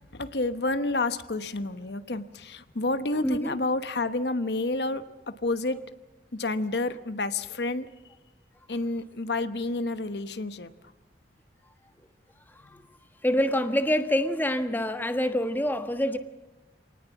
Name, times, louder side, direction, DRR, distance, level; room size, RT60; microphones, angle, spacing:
voice 1, 0.1-5.8 6.3-7.9 8.7-10.7, left 2 dB, 70° left, 1.1 m, -29 dB
voice 2, 3.2-3.6 12.7-12.8 13.2-16.2, equal, 10° left, 1.3 m, -26 dB
27.0 x 19.0 x 7.2 m
head